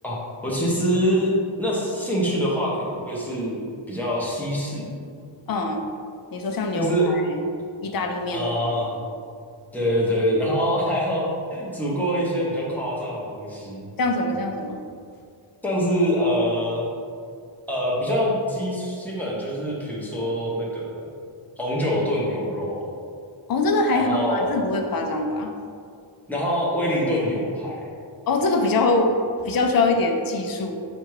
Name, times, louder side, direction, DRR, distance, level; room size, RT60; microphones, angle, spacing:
voice 1, 0.4-1.3 1.6-3.6 3.9-4.9 6.7-7.1 8.3-9.0 9.7-13.9 15.6-16.9 17.7-21.1 21.6-22.9 23.9-24.6 26.3-27.8, equal, 5° left, -6 dB, 0.7 m, -25 dB
voice 2, 5.5-5.8 6.3-7.4 7.8-8.5 14.0-14.8 23.5-25.5 28.3-29.1 29.5-30.8, left 2 dB, 45° left, 3 dB, 0.5 m, -23 dB
4.4 x 2.5 x 4.7 m, 2.3 s
wide cardioid pair, 180°, 49 cm